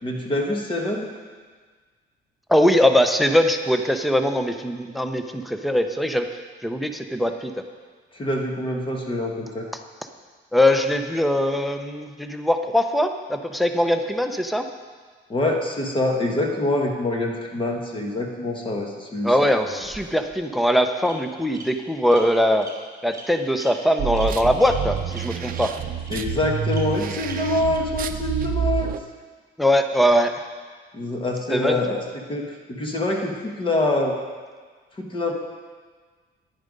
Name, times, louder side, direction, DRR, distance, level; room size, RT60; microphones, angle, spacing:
voice 1, 0.0-1.1 8.1-9.7 15.3-19.3 26.1-28.9 30.9-34.1 35.0-35.3, left 2 dB, 25° left, 1 dB, 1.5 m, -25 dB
voice 2, 2.5-6.3 6.6-7.5 10.5-14.7 19.2-22.7 23.0-25.7 29.6-30.4 31.5-31.8, equal, ahead, 6 dB, 0.6 m, -21 dB
Bird vocalization bird call bird song, 19.6-20.4 21.0-21.1 21.5-21.6 22.1-22.2 22.6-22.7 23.1-23.3 23.6-23.7 24.1-24.3 24.6-24.7 25.1-25.2 25.5-25.7 26.1-26.2 26.7-26.8 27.3-27.4 27.7-27.8, right 4 dB, 20° right, 2.9 m, -41 dB
sound 1, 24.0-29.0, right 8 dB, 50° right, 0.6 m, -28 dB
10.0 x 10.0 x 5.2 m, 1.5 s
cardioid pair, 140°, 19 cm